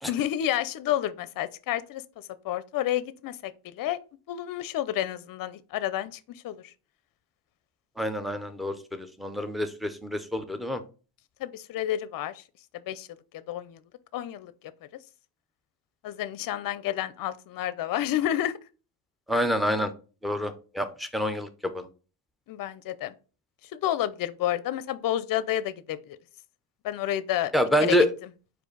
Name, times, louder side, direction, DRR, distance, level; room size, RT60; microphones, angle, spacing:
voice 1, 0.1-2.0 2.4-4.0 4.3-6.7 11.4-12.4 12.9-13.1 13.3-13.8 14.1-14.5 16.0-18.6 22.5-23.1 23.7-26.2 26.8-27.5 27.8-28.0, left 12 dB, 45° left, 0.5 m, -30 dB
voice 2, 8.0-10.8 19.3-19.9 20.2-21.9 27.5-28.1, equal, ahead, 0.5 m, -27 dB
4.5 x 2.6 x 4.5 m
cardioid pair, 90°, 46 cm